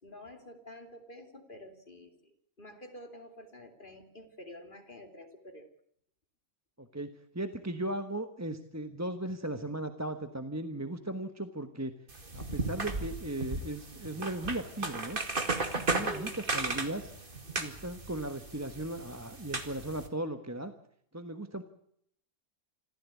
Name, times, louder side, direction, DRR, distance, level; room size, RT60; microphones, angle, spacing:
voice 1, 0.0-5.7 16.0-16.4, equal, 40° left, 6 dB, 3.1 m, -48 dB
voice 2, 6.8-11.9 12.3-15.2 15.7-17.1 17.6-20.7 21.1-21.6, right 1 dB, 15° right, 8 dB, 1.2 m, -37 dB
sound 1, 12.1-20.1, right 3 dB, 40° right, 2.4 m, -35 dB
26.5 x 14.5 x 8.4 m, 0.69 s
omnidirectional pair, 1.4 m